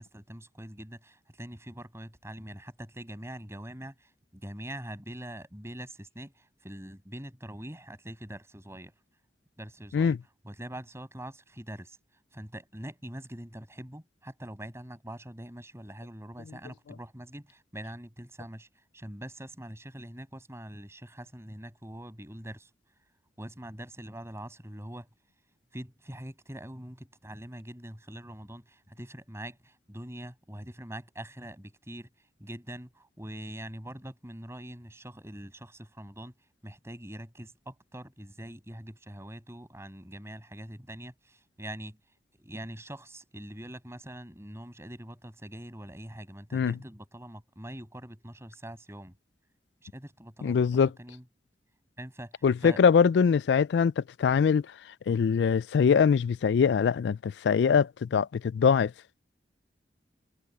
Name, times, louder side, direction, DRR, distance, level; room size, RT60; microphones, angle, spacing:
voice 1, 0.0-8.9 9.6-10.2 10.4-12.0 12.3-18.7 18.9-22.7 23.4-25.1 25.7-32.1 32.4-36.3 36.6-42.0 42.4-49.1 49.8-51.2 52.0-52.8, right 1 dB, 15° right, 7.0 m, -43 dB
voice 2, 50.4-50.9 52.4-54.7 55.1-58.9, left 6 dB, 70° left, 0.3 m, -23 dB
head